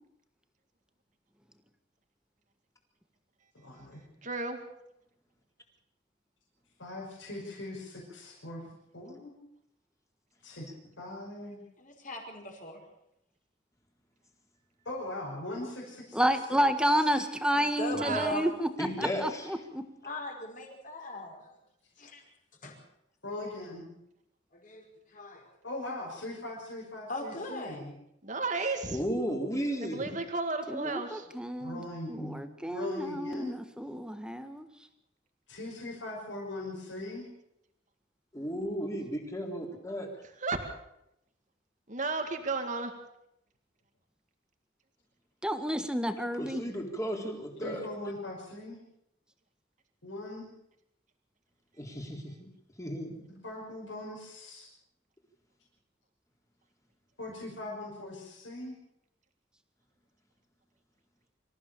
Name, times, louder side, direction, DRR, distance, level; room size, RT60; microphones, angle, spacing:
voice 1, 3.5-4.0 6.8-8.6 8.9-9.3 10.4-10.7 11.0-11.6 14.8-16.2 16.5-16.6 23.2-23.9 25.6-27.9 31.6-32.4 32.7-33.5 35.5-37.3 47.6-48.8 50.0-50.5 53.4-54.7 57.2-58.8, left 2 dB, 85° left, -4 dB, 5.9 m, -40 dB
voice 2, 4.2-4.6 18.0-18.5 28.2-29.0 29.9-31.3 40.4-40.6 41.9-42.9, right 3 dB, 40° right, 5 dB, 2.1 m, -33 dB
voice 3, 11.8-12.8 17.5-18.5 20.0-21.5 22.0-22.2 22.6-22.8 24.5-25.5 27.1-27.8, left 1 dB, 45° left, 1 dB, 5.3 m, -39 dB
voice 4, 16.1-19.8 30.7-31.8 32.1-34.7 45.4-46.6, equal, 5° right, 8 dB, 1.6 m, -30 dB
voice 5, 18.8-19.5 28.6-30.0 38.3-40.1 46.3-47.9 51.8-52.5 52.8-53.4, equal, 15° left, 1 dB, 3.8 m, -35 dB
25.5 x 15.0 x 7.0 m, 0.79 s
head